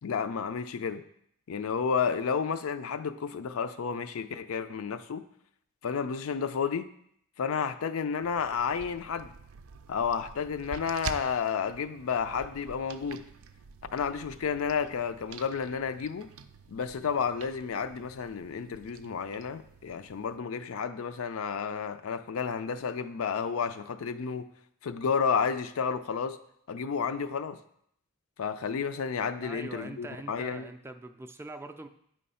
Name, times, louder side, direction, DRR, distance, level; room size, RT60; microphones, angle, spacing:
voice 1, 0.0-1.0 1.5-5.3 5.8-6.9 7.4-9.3 9.9-13.2 13.9-16.3 16.7-24.5 24.8-26.4 26.7-27.6 28.4-30.7, left 6 dB, 75° left, 11 dB, 0.4 m, -31 dB
sound 1, 8.2-20.4, right 6 dB, 85° right, 0.4 m, -47 dB
voice 2, 29.4-31.9, right 2 dB, 10° right, 6 dB, 0.3 m, -43 dB
8.5 x 3.2 x 5.5 m, 0.70 s
head